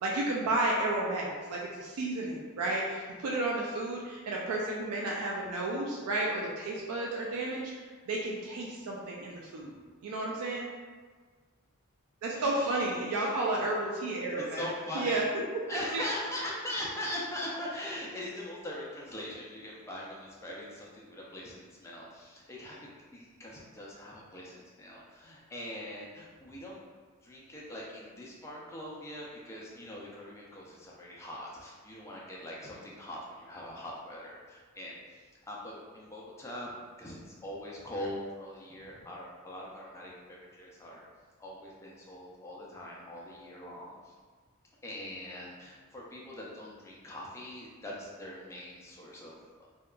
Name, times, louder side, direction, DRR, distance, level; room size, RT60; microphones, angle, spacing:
voice 1, 0.0-9.7 10.0-10.7 12.2-14.6 14.9-15.2 15.9-16.1, right 2 dB, 80° right, -3 dB, 0.4 m, -32 dB
voice 2, 12.3-13.8 14.4-15.2 15.7-26.8 27.2-41.0 41.4-44.1 44.8-49.7, left 1 dB, 15° left, -4 dB, 0.4 m, -42 dB
2.8 x 2.4 x 2.2 m, 1.5 s
head